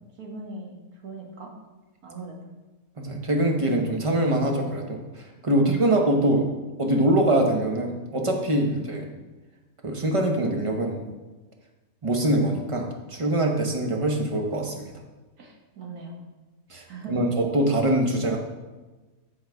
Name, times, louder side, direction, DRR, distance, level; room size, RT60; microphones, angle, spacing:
voice 1, 0.2-0.8 1.0-1.5 2.0-2.4 5.5-5.6 15.4-16.2 16.9-17.1, right 3 dB, 90° right, -1 dB, 1.8 m, -40 dB
voice 2, 3.0-5.0 5.4-6.5 6.8-9.1 9.8-11.0 12.0-14.9 16.7-18.4, right 1 dB, 25° right, 2 dB, 0.8 m, -23 dB
9.2 x 4.3 x 4.6 m, 1.2 s
omnidirectional pair, 1.5 m